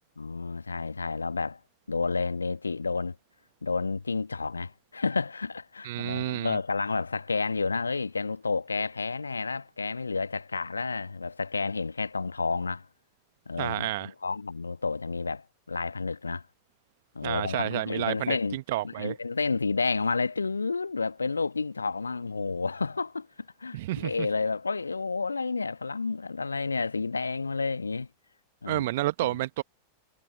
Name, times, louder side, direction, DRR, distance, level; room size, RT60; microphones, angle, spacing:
voice 1, 0.2-1.6 1.9-3.2 3.6-12.9 13.5-16.4 17.1-18.6 18.8-23.3 23.6-28.1 28.6-28.8 29.2-29.3, left 4 dB, 80° left, 1.5 m, -30 dB
voice 2, 5.8-6.6 13.6-14.1 17.2-19.1 23.7-24.3 28.7-29.6, right 16 dB, 55° right, 1.3 m, -30 dB
figure-of-eight pair, 90°, 0 cm